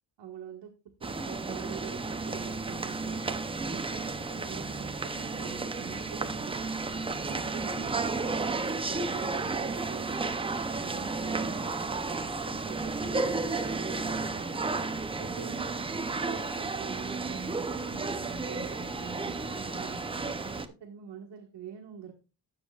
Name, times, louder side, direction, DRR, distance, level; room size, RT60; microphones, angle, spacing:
voice 1, 0.2-0.7 1.0-3.2 3.6-6.7 7.1-10.4 10.8-14.6 15.2-15.7 16.2-22.1, right 8 dB, 85° right, -1 dB, 1.6 m, -45 dB
sound 1, 1.0-20.7, right 3 dB, 15° right, 0.6 m, -33 dB
16.0 x 7.2 x 2.4 m, 0.32 s
cardioid pair, 155°, 42 cm